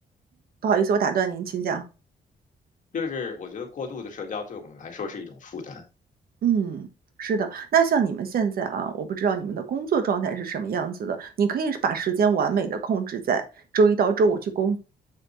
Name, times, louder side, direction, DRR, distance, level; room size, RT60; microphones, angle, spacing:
voice 1, 0.6-1.8 6.4-6.9 7.2-13.4 13.7-14.8, right 6 dB, 65° right, 8 dB, 1.3 m, -24 dB
voice 2, 2.9-5.8, left 5 dB, 50° left, 3 dB, 2.0 m, -34 dB
7.2 x 6.5 x 3.1 m, 0.30 s
cardioid pair, 130°, 17 cm